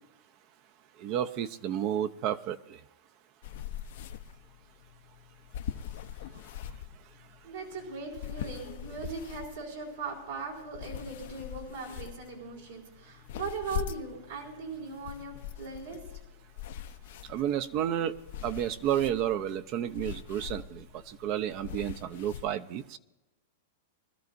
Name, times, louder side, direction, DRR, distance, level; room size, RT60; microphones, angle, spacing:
voice 1, 1.0-2.6 17.3-18.2 18.4-23.0, right 10 dB, 45° right, 10 dB, 0.6 m, -31 dB
sound 1, 3.4-22.5, left 10 dB, 65° left, 0.7 m, -43 dB
voice 2, 7.4-16.0, right 4 dB, 80° right, -3 dB, 4.2 m, -39 dB
23.5 x 13.0 x 2.6 m, 1.0 s
hypercardioid pair, 130°, 0 cm